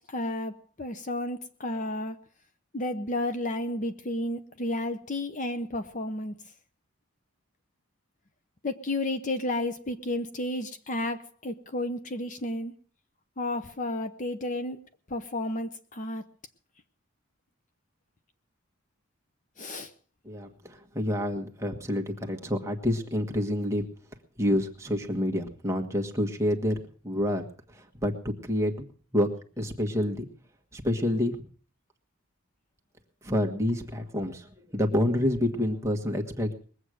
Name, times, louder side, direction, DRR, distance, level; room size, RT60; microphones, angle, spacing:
voice 1, 0.1-2.2 2.7-6.3 8.6-12.7 13.4-14.8 15.1-16.2 19.6-19.9, left 1 dB, 35° left, 10 dB, 0.7 m, -32 dB
voice 2, 20.2-23.9 24.4-26.7 27.0-27.4 27.7-28.1 28.4-28.9 29.1-29.3 29.6-30.3 30.7-31.4 33.2-36.5, left 1 dB, 15° right, 2 dB, 1.5 m, -28 dB
21.0 x 8.1 x 6.4 m, 0.44 s
head